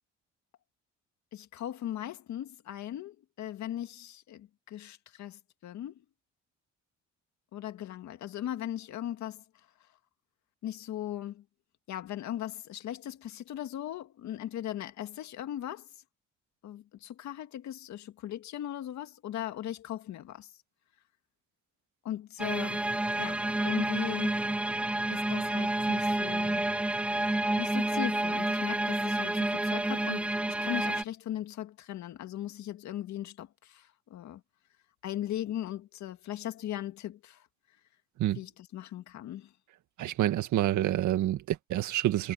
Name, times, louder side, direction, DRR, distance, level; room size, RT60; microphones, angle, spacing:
voice 1, 1.3-6.0 7.5-9.4 10.6-11.4 11.9-15.9 16.6-20.5 22.0-22.9 23.2-24.4 25.1-26.7 27.6-34.4 35.0-37.5 38.3-39.5, left 12 dB, 70° left, 2.1 m, -38 dB
sound 1, 22.4-31.0, right 1 dB, 5° right, 0.3 m, -29 dB
voice 2, 40.0-42.3, right 13 dB, 80° right, 2.1 m, -28 dB
cardioid pair, 120°, 29 cm